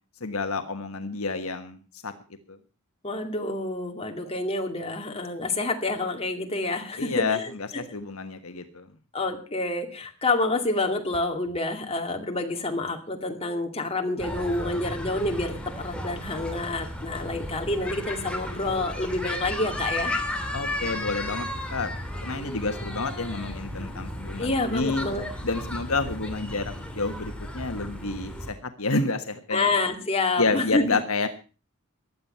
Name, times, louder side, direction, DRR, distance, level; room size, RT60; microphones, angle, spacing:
voice 1, 0.2-1.8 2.0-2.1 2.5-2.6 7.0-7.4 7.7-8.9 20.5-21.9 22.2-25.1 25.4-29.7 30.4-31.3, left 3 dB, 70° left, 8 dB, 1.4 m, -29 dB
voice 2, 3.0-7.8 9.1-20.1 24.4-25.3 29.5-31.0, left 2 dB, 25° left, 4 dB, 2.4 m, -28 dB
sound 1, 14.2-28.5, left 1 dB, 5° left, 2.7 m, -34 dB
15.5 x 11.0 x 5.7 m, 0.35 s
head